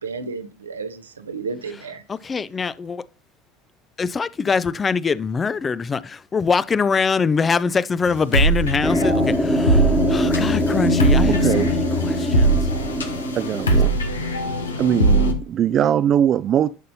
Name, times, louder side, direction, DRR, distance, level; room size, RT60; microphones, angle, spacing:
voice 1, 0.0-2.0, right 4 dB, 90° right, 0.8 m, -32 dB
voice 2, 2.1-3.0 4.0-12.6, left 5 dB, 25° left, 0.5 m, -23 dB
sound 1, 8.1-15.3, right 1 dB, 90° left, 1.0 m, -21 dB
sound 2, 8.8-13.8, right 1 dB, ahead, 1.3 m, -23 dB
voice 3, 11.3-11.7 13.3-13.9 14.8-16.7, right 10 dB, 45° right, 0.3 m, -21 dB
11.0 x 5.3 x 2.7 m
hypercardioid pair, 75°, 0 cm